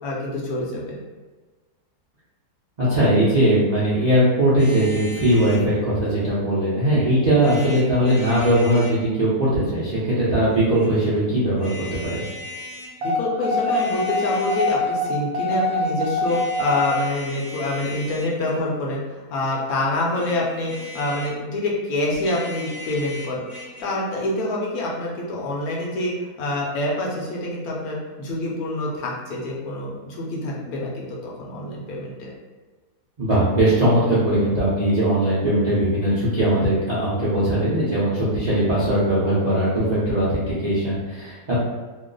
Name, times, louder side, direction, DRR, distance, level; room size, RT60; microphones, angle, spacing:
voice 1, 0.0-1.0 13.0-23.4 23.8-32.3, left 1 dB, 70° left, -3 dB, 1.1 m, -26 dB
voice 2, 2.8-12.2 33.2-41.5, right 1 dB, 50° right, -10 dB, 0.5 m, -20 dB
sound 1, 4.6-5.7 7.3-9.0 10.5-10.9 11.6-12.9 13.5-14.9 16.2-18.7 20.0-21.4 22.1-23.8, left 1 dB, 35° left, 0.8 m, -38 dB
sound 2, 13.0-17.0, left 2 dB, 65° right, 1.1 m, -23 dB
2.9 x 2.0 x 3.8 m, 1.3 s
omnidirectional pair, 1.7 m